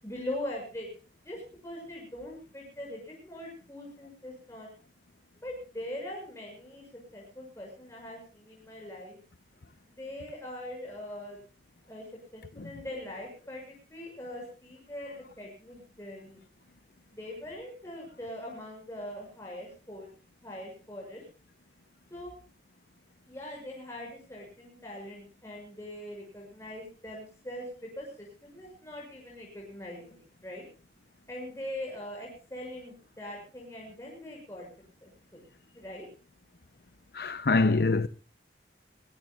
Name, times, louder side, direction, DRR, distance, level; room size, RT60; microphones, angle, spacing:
voice 1, 0.0-0.9 1.2-4.7 5.4-6.9 7.1-9.2 9.9-11.4 11.9-12.0 12.3-16.4 17.1-20.1 20.4-21.2 22.1-22.3 23.3-30.6 31.3-34.7 35.0-35.4 35.7-36.1, left 1 dB, 15° left, 6.8 m, -42 dB
voice 2, 37.1-38.1, left 3 dB, 60° left, 0.7 m, -25 dB
23.0 x 22.5 x 2.4 m
head